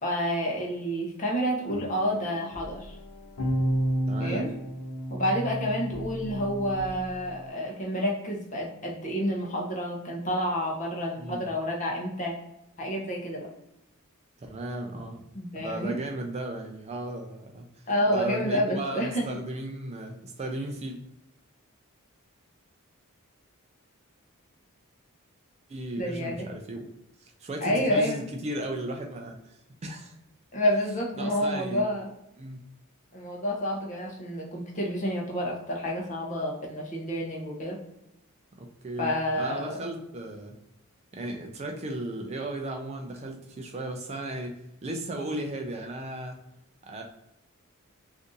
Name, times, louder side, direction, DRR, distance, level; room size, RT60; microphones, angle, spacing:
voice 1, 0.0-3.0 4.2-4.5 5.1-12.4 12.8-13.5 15.3-16.0 17.9-19.4 26.0-26.5 27.6-28.2 30.5-32.1 33.1-37.8 39.0-39.8, equal, 35° left, -1 dB, 0.7 m, -29 dB
sound 1, 1.6-7.5, right 1 dB, 75° left, 0.7 m, -32 dB
voice 2, 4.1-4.5 11.2-11.5 14.4-15.2 15.5-17.8 18.1-21.0 25.7-26.9 27.2-30.2 31.2-31.8 32.4-32.6 38.6-40.6 41.1-44.6 44.8-46.4 46.9-47.0, right 1 dB, 30° right, 3 dB, 0.3 m, -35 dB
2.6 x 2.5 x 3.7 m, 0.85 s
head